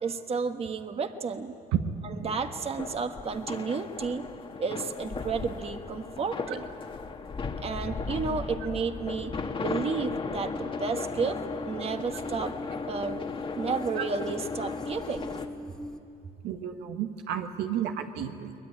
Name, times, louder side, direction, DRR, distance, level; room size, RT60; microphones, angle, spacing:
voice 1, 0.0-1.6 2.0-4.3 4.6-6.6 7.6-11.4 11.6-12.5 12.9-13.2 13.6-15.3, right 5 dB, 35° right, 7 dB, 1.3 m, -32 dB
sound 1, 2.2-15.5, left 4 dB, 30° left, 1.4 m, -36 dB
sound 2, 7.5-16.0, left 2 dB, 5° left, 1.7 m, -42 dB
voice 2, 16.4-18.5, right 9 dB, 90° right, 6 dB, 1.5 m, -31 dB
22.5 x 21.0 x 9.8 m, 2.5 s
cardioid pair, 110°, 17 cm